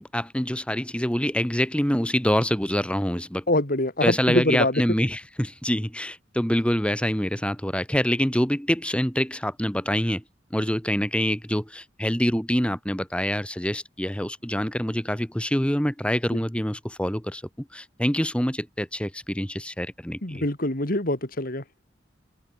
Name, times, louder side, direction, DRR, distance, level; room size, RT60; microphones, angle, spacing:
voice 1, 0.0-3.4 4.0-10.2 10.5-17.4 17.7-20.4, equal, 5° left, 2.6 m, -25 dB
voice 2, 3.5-4.8 16.3-16.4 20.2-21.6, left 1 dB, 50° left, 3.7 m, -24 dB
head